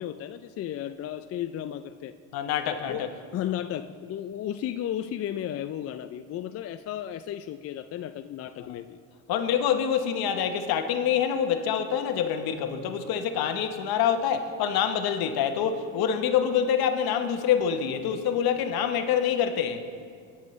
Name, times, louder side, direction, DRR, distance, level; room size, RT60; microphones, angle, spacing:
voice 1, 0.0-2.2 2.9-3.1 3.3-9.0, left 11 dB, 40° left, 10 dB, 0.4 m, -34 dB
voice 2, 2.3-3.1 8.7-8.8 9.3-19.8, left 8 dB, 65° left, 7 dB, 1.1 m, -26 dB
19.0 x 7.3 x 3.2 m, 2.1 s
supercardioid pair, 80°, 41 cm